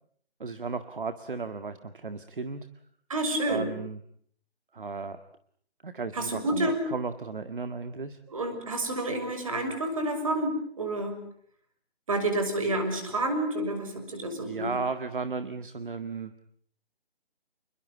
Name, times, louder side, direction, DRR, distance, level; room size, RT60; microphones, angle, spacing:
voice 1, 0.4-2.7 3.5-4.0 4.7-5.2 5.8-8.2 13.1-13.2 14.4-16.3, right 4 dB, 50° right, 10 dB, 1.9 m, -35 dB
voice 2, 3.1-3.7 6.1-6.8 8.3-11.2 12.1-14.7, right 1 dB, 30° right, 7 dB, 6.3 m, -29 dB
29.0 x 22.5 x 8.5 m, 0.63 s
hypercardioid pair, 175°, 32 cm